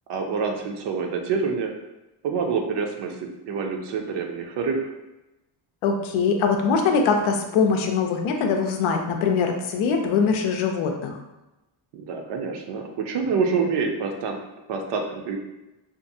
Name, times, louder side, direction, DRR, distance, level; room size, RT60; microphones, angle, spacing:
voice 1, 0.1-1.7 2.2-4.9 11.9-14.4 14.7-15.4, right 5 dB, 60° right, 3 dB, 0.5 m, -27 dB
voice 2, 5.8-11.2, left 5 dB, 80° left, 3 dB, 0.6 m, -22 dB
2.6 x 2.4 x 2.6 m, 0.99 s
cardioid pair, 135°, 47 cm